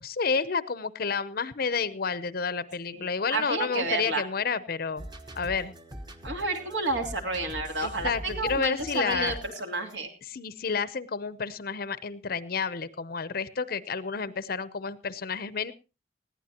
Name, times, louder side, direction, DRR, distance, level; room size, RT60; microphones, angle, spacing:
voice 1, 0.0-5.0 5.4-5.7 7.8-9.4 10.3-15.7, left 5 dB, 50° left, 15 dB, 0.7 m, -30 dB
voice 2, 2.9-4.2 6.2-10.1, right 3 dB, 70° right, 4 dB, 3.0 m, -31 dB
sound 1, 5.0-10.0, equal, 25° right, 1.2 m, -43 dB
20.5 x 15.0 x 2.9 m, 0.31 s
head